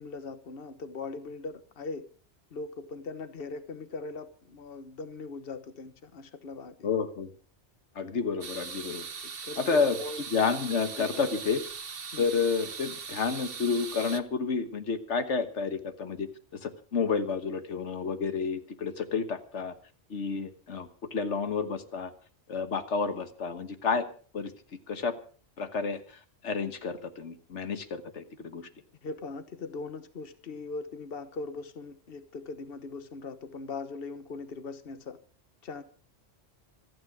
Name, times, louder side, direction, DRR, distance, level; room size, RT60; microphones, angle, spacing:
voice 1, 0.0-2.0 2.5-6.9 9.4-10.2 10.9-11.3 12.1-12.2 29.0-35.2 35.6-35.8, left 3 dB, 55° left, 1.4 m, -40 dB
voice 2, 6.8-7.3 7.9-9.1 9.6-10.0 10.3-11.6 12.2-16.3 16.5-19.7 20.1-22.1 22.5-24.1 24.3-24.5 24.9-25.1 25.6-26.0 26.4-28.6, left 5 dB, 85° left, 1.6 m, -30 dB
sound 1, 8.4-14.2, right 6 dB, 55° right, 1.3 m, -40 dB
26.5 x 9.5 x 4.8 m
omnidirectional pair, 1.2 m